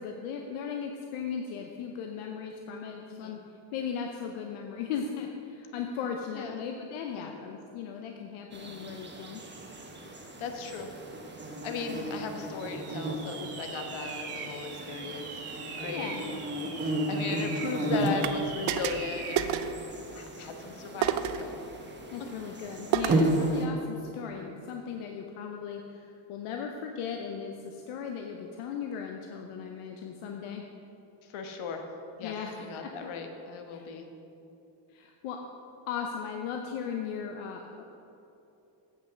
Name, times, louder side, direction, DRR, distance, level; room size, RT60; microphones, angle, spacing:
voice 1, 0.0-3.4 3.7-9.4 15.8-16.2 22.1-30.6 32.2-33.1 33.7-33.9 34.9-35.4 35.9-37.8, left 7 dB, 85° left, 3 dB, 0.8 m, -37 dB
sound 1, 8.5-23.7, right 1 dB, 20° right, 1.2 m, -34 dB
voice 2, 10.1-10.9 11.6-15.5 15.8-16.2 16.8-19.7 20.1-21.6 31.2-31.9 32.2-34.1, left 4 dB, 70° left, 5 dB, 1.3 m, -37 dB
sound 2, 12.6-19.5, right 5 dB, 85° right, 1.5 m, -42 dB
sound 3, 18.2-18.4 18.7-19.1 19.4-19.8 21.0-21.5 22.9-23.3, right 10 dB, 70° right, 0.6 m, -29 dB
8.4 x 5.7 x 6.7 m, 2.9 s
cardioid pair, 80°, 50 cm